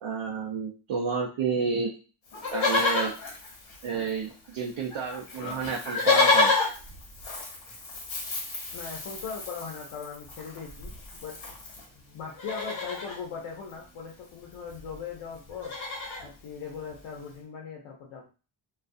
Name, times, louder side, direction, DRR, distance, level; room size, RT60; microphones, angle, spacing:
voice 1, 0.0-1.9 2.5-3.1 3.8-6.5, right 5 dB, 80° right, -1 dB, 0.6 m, -30 dB
Livestock farm animals working animals, 2.3-4.3 4.6-4.7 4.9-11.8 12.3-13.2 14.4-14.5 14.7-15.0 15.3-16.3 16.9-17.0, left 3 dB, 70° left, 1.0 m, -29 dB
voice 2, 8.7-11.4 12.1-15.7 16.2-18.3, left 6 dB, 85° left, -2 dB, 0.7 m, -39 dB
2.4 x 2.3 x 2.5 m, 0.34 s
wide cardioid pair, 105°, 49 cm